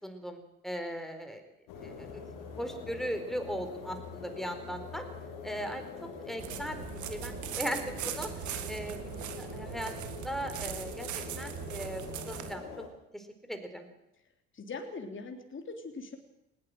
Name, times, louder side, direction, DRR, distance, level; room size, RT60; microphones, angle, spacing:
voice 1, 0.0-1.4 1.8-5.0 5.4-6.8 7.1-11.1 11.4-12.9 13.1-13.9, equal, ahead, 7 dB, 4.4 m, -38 dB
sound 1, 1.7-12.9, left 5 dB, 70° left, 4.1 m, -44 dB
sound 2, 6.4-12.5, right 10 dB, 65° right, 2.0 m, -40 dB
voice 2, 14.5-16.2, left 3 dB, 35° left, 4 dB, 3.4 m, -41 dB
20.0 x 17.0 x 7.9 m, 0.85 s
hypercardioid pair, 55°, 33 cm